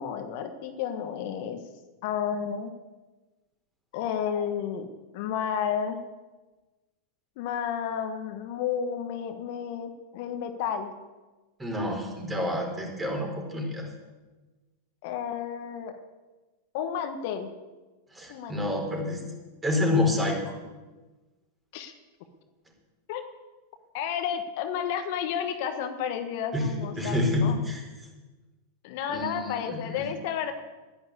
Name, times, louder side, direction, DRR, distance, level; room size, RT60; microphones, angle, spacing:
voice 1, 0.0-1.6 2.0-2.7 3.9-6.0 7.4-10.9 15.0-16.0 16.7-17.5 18.3-18.8 21.7-21.9 23.1-23.3 23.9-27.6 28.8-30.5, left 8 dB, 60° left, 7 dB, 1.3 m, -31 dB
voice 2, 11.6-13.9 18.1-19.2 19.6-20.5 26.5-26.7 27.0-27.8 29.1-30.0, left 2 dB, 15° right, 1 dB, 4.6 m, -28 dB
10.5 x 10.5 x 8.3 m, 1.2 s
hypercardioid pair, 100°, 0 cm